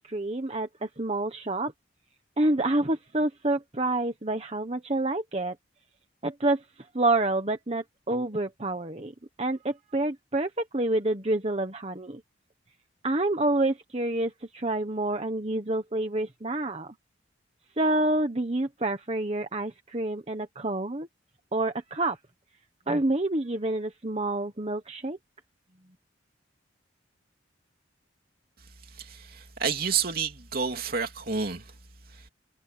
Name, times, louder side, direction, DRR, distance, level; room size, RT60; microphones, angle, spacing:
voice 1, 0.0-1.7 2.4-5.6 6.2-6.6 6.9-9.1 9.4-12.2 13.0-16.9 17.8-21.1 21.5-22.2 22.9-25.2, right 2 dB, 30° right, 1.3 m, -28 dB
voice 2, 29.0-31.7, right 6 dB, 50° right, 3.2 m, -29 dB
head